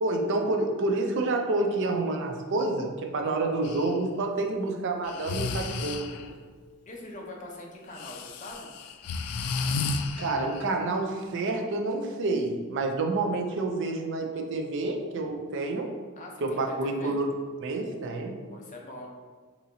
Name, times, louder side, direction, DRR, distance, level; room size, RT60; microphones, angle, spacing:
voice 1, 0.0-6.4 10.2-15.9 16.4-17.3 17.6-18.4, right 2 dB, 55° right, 3 dB, 0.5 m, -28 dB
Breathing, 3.6-3.9 5.0-6.3 8.0-10.7, left 4 dB, 85° left, 0.3 m, -32 dB
voice 2, 6.9-8.7 16.2-17.2 18.5-19.1, left 1 dB, 35° left, -1 dB, 0.6 m, -42 dB
4.0 x 2.9 x 2.7 m, 1.5 s
head